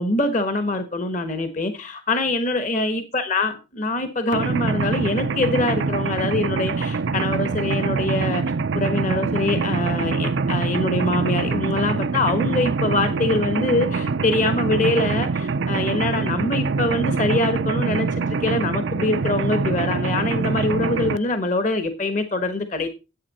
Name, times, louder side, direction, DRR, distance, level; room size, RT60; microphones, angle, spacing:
voice 1, 0.0-8.4 8.7-18.1 18.4-22.9, left 2 dB, 40° left, 1.2 m, -24 dB
Mechanisms, 4.3-21.2, right 4 dB, 70° right, 0.5 m, -24 dB
10.5 x 8.5 x 4.1 m
head